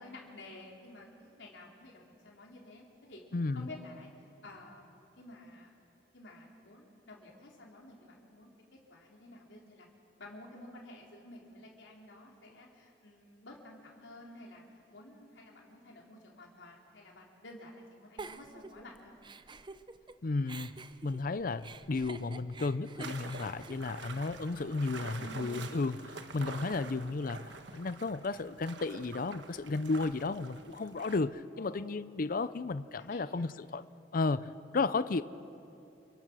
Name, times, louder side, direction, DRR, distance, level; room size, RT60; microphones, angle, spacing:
voice 1, 0.0-3.2 3.5-5.8 6.1-8.5 8.9-9.9 10.2-14.6 14.9-19.1 25.1-25.8 26.1-26.2 31.5-32.0 33.0-33.4, left 1 dB, 85° left, -2 dB, 4.0 m, -51 dB
voice 2, 3.3-3.7 20.2-20.7 21.0-33.8 34.1-35.2, left 3 dB, 50° left, 14 dB, 0.5 m, -33 dB
Giggle, 18.2-20.1 20.5-24.7, right 3 dB, 25° right, 0.6 m, -48 dB
sound 1, 23.0-31.2, right 4 dB, 70° right, 1.4 m, -47 dB
28.0 x 23.5 x 6.3 m, 2.8 s
head